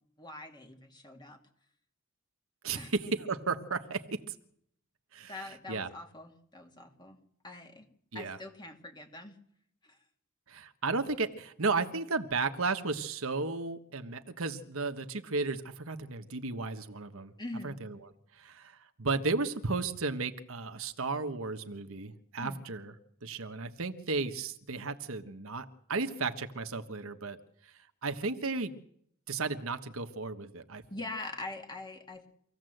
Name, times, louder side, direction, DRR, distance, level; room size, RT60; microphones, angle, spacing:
voice 1, 0.2-1.4 2.7-2.9 5.3-7.2 7.4-9.4 9.8-10.0 17.4-17.8 22.4-22.7 30.9-32.3, left 2 dB, 20° left, 4 dB, 2.5 m, -43 dB
voice 2, 2.6-4.3 5.1-5.9 8.1-8.4 10.5-17.3 17.6-18.0 18.3-22.9 23.2-27.4 28.0-28.7 29.3-30.8, right 3 dB, 65° right, 8 dB, 1.3 m, -34 dB
25.0 x 16.0 x 7.9 m, 0.70 s
head